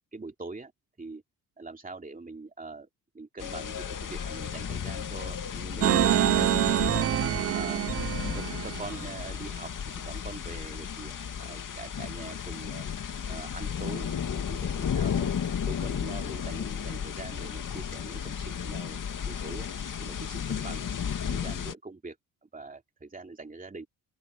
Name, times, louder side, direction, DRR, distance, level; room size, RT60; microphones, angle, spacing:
voice 1, 0.1-0.7 1.0-1.2 1.6-2.9 3.1-7.1 7.5-7.9 8.3-11.1 11.4-12.9 13.3-15.3 15.6-19.7 20.0-20.8 21.2-22.2 22.4-23.9, right 3 dB, 20° right, 2.6 m, -43 dB
sound 1, 3.4-21.7, left 7 dB, 50° left, 2.4 m, -34 dB
sound 2, 5.8-9.1, right 11 dB, 35° right, 0.4 m, -26 dB
open air
cardioid pair, 75°, 40 cm